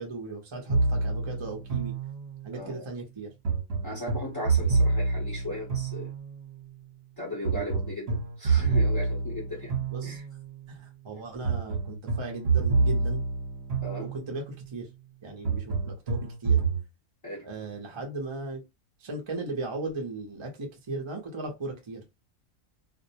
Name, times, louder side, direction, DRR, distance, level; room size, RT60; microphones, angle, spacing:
voice 1, 0.0-1.9 2.4-3.3 7.4-7.7 9.9-10.2 10.7-13.2 14.0-14.9 15.2-16.6 17.4-18.6 19.0-22.0, right 3 dB, 30° right, 0.5 m, -37 dB
sound 1, 0.7-2.6 3.4-6.5 7.4-10.5 11.4-14.5 15.4-16.8, right 4 dB, 50° right, 1.0 m, -27 dB
voice 2, 2.5-2.9 3.8-6.1 7.2-9.8 10.0-10.2 13.8-14.1 17.2-17.5, left 1 dB, 25° left, 0.6 m, -37 dB
2.5 x 2.0 x 2.7 m
omnidirectional pair, 1.4 m